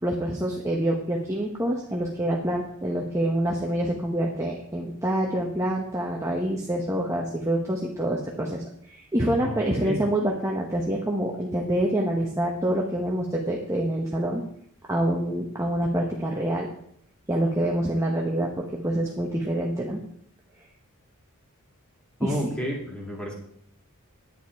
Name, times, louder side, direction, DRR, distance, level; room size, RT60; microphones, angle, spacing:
voice 1, 0.0-14.4 14.9-16.7 17.3-20.0 22.2-22.3, right 1 dB, 15° right, -2 dB, 1.1 m, -26 dB
voice 2, 9.4-10.0 22.2-23.3, equal, 5° left, -2 dB, 2.6 m, -31 dB
10.0 x 8.7 x 4.7 m, 0.69 s
head